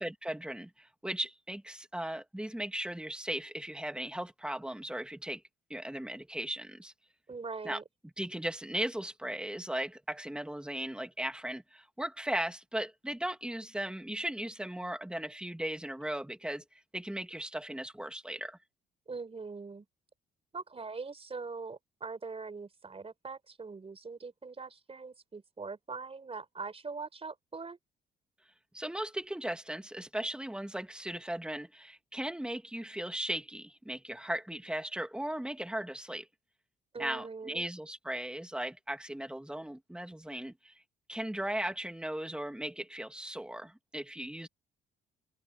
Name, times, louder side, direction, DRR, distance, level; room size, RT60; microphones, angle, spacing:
voice 1, 0.0-5.4 5.7-6.9 7.6-7.8 8.2-18.6 28.7-36.3 37.0-40.8 41.1-44.5, right 1 dB, 5° right, 2.0 m, -37 dB
voice 2, 7.3-7.8 19.1-19.9 20.5-27.8 36.9-37.7, right 4 dB, 30° right, 4.0 m, -42 dB
cardioid pair, 90°, 20 cm